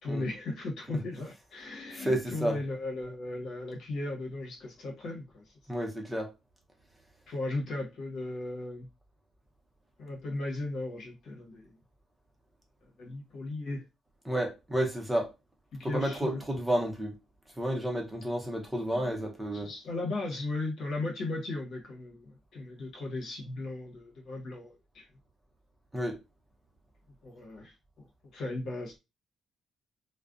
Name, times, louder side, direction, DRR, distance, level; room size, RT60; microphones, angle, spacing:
voice 1, 0.0-5.5 7.3-8.9 10.0-11.7 13.0-13.8 15.8-16.4 18.8-19.2 19.5-25.1 27.2-28.0 28.3-29.0, left 2 dB, 70° left, 1.0 m, -36 dB
voice 2, 1.9-2.6 5.7-6.3 14.2-15.3 15.8-17.1 17.6-19.7 25.9-26.2, right 1 dB, 10° right, 0.7 m, -31 dB
2.4 x 2.1 x 2.4 m
cardioid pair, 90°, 0 cm